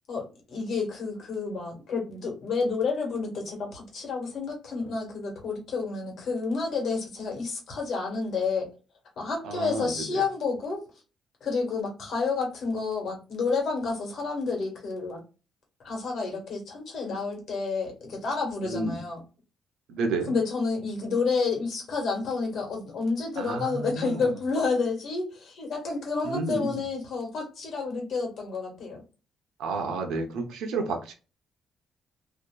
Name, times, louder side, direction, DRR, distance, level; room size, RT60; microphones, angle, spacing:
voice 1, 0.1-8.7 9.2-10.8 11.4-15.2 15.8-19.2 20.3-29.0, left 4 dB, 65° left, 0 dB, 1.4 m, -30 dB
voice 2, 9.4-10.2 18.6-19.0 19.9-20.3 23.4-24.3 26.2-26.8 29.6-31.1, right 3 dB, 85° right, 4 dB, 0.7 m, -31 dB
2.7 x 2.4 x 2.2 m, 0.32 s
cardioid pair, 90°, 0 cm